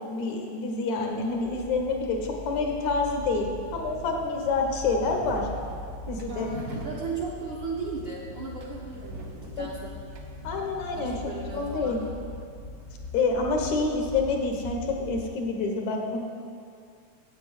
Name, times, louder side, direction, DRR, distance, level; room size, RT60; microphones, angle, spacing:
voice 1, 0.0-5.5 6.1-6.5 9.6-9.7 10.4-11.2 11.5-12.0 13.1-16.2, left 3 dB, 75° left, 2 dB, 2.5 m, -27 dB
sound 1, 1.1-15.2, left 2 dB, 30° left, 1.1 m, -41 dB
sound 2, 3.0-14.1, right 2 dB, 80° right, 0.8 m, -46 dB
voice 2, 6.3-10.0 10.9-12.1, right 4 dB, 50° right, -4 dB, 1.6 m, -36 dB
8.5 x 8.4 x 7.9 m, 2.3 s
omnidirectional pair, 3.4 m